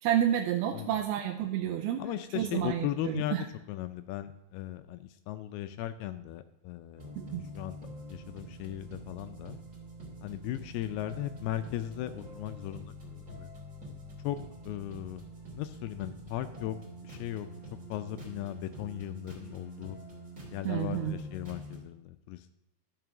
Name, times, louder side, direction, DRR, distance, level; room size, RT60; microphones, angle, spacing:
voice 1, 0.0-2.0 2.4-3.4 7.2-7.4 20.7-21.2, right 11 dB, 80° right, 2 dB, 2.4 m, -30 dB
voice 2, 2.0-7.1 7.5-9.6 10.2-13.5 14.2-14.4 14.6-15.2 15.6-17.5 17.9-20.0 20.5-22.5, left 13 dB, 80° left, 10 dB, 2.4 m, -37 dB
sound 1, 7.0-21.8, right 1 dB, 25° right, 2.5 m, -46 dB
12.5 x 5.5 x 5.9 m, 0.87 s
omnidirectional pair, 4.7 m